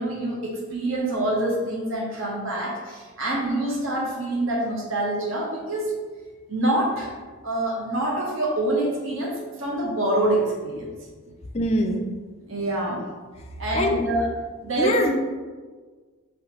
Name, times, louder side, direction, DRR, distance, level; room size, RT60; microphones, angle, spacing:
voice 1, 0.0-5.9 6.5-7.1 7.4-10.9 12.5-13.0 13.6-14.3 14.6-15.0, right 1 dB, 65° right, -3 dB, 0.9 m, -26 dB
voice 2, 11.5-12.0 13.7-14.1 14.8-15.1, left 1 dB, 30° left, 4 dB, 0.4 m, -23 dB
5.5 x 3.2 x 3.0 m, 1.4 s
head